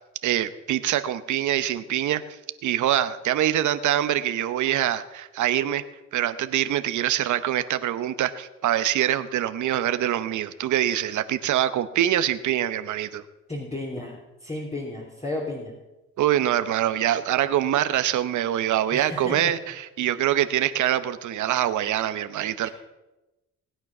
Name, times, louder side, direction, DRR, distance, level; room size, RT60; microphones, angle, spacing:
voice 1, 0.2-2.2 2.6-5.8 6.1-13.2 16.2-22.7, right 12 dB, 75° right, 11 dB, 0.9 m, -24 dB
voice 2, 13.5-15.7 18.9-19.5 22.6-22.7, left 1 dB, 20° left, -3 dB, 3.2 m, -33 dB
19.5 x 9.1 x 6.1 m, 1.0 s
cardioid pair, 90°, 30 cm